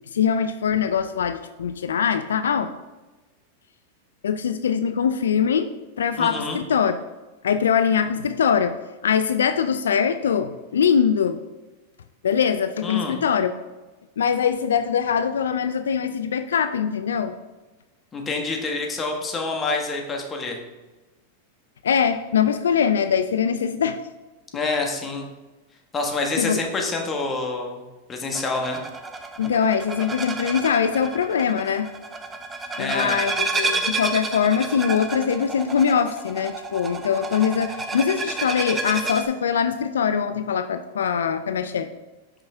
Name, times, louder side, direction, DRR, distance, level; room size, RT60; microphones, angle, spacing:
voice 1, 0.1-2.7 4.2-5.7 6.0-6.9 7.4-8.7 9.0-11.4 12.2-13.5 14.2-17.3 21.8-24.0 26.4-26.6 29.4-31.9 32.8-41.9, left 7 dB, 85° left, 10 dB, 0.3 m, -22 dB
voice 2, 6.2-6.6 12.8-13.2 18.1-20.6 24.5-25.2 25.9-27.8 28.1-28.8 32.8-33.2, left 3 dB, 25° left, 1 dB, 1.4 m, -27 dB
sound 1, 28.3-39.2, right 3 dB, 20° right, 0.7 m, -30 dB
5.7 x 5.6 x 3.4 m, 1.2 s
hypercardioid pair, 105°, 0 cm